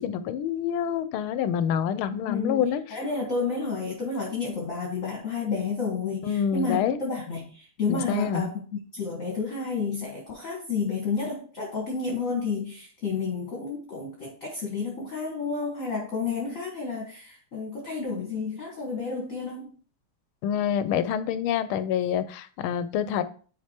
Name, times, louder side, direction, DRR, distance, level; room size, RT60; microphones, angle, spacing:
voice 1, 0.0-2.8 6.2-7.0 7.9-8.5 20.4-23.2, left 8 dB, 80° left, 13 dB, 1.5 m, -27 dB
voice 2, 2.3-19.7, left 4 dB, 40° left, -1 dB, 1.6 m, -31 dB
9.4 x 5.0 x 2.8 m, 0.40 s
omnidirectional pair, 2.3 m